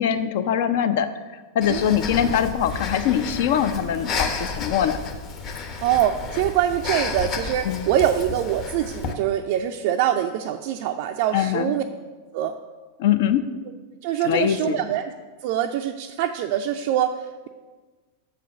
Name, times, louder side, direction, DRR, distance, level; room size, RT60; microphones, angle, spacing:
voice 1, 0.0-5.0 7.6-7.9 11.3-11.7 13.0-13.4 14.2-14.8, left 9 dB, 55° left, 10 dB, 0.5 m, -23 dB
Breathing, 1.6-9.1, left 4 dB, 35° left, 1.0 m, -31 dB
voice 2, 5.8-11.8 12.3-12.5 14.0-15.1 15.4-17.5, right 11 dB, 50° right, 4 dB, 0.4 m, -24 dB
6.3 x 5.0 x 6.9 m, 1.3 s
figure-of-eight pair, 90°, 0 cm